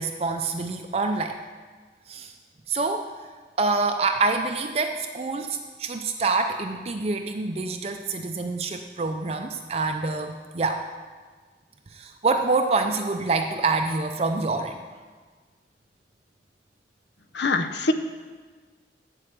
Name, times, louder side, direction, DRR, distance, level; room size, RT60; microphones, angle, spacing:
voice 1, 0.0-1.4 2.1-2.3 2.7-3.1 3.6-10.8 11.9-14.8, right 3 dB, 35° right, 5 dB, 0.5 m, -26 dB
voice 2, 17.4-17.9, left 3 dB, 75° left, 9 dB, 0.7 m, -23 dB
8.8 x 7.8 x 7.5 m, 1.5 s
head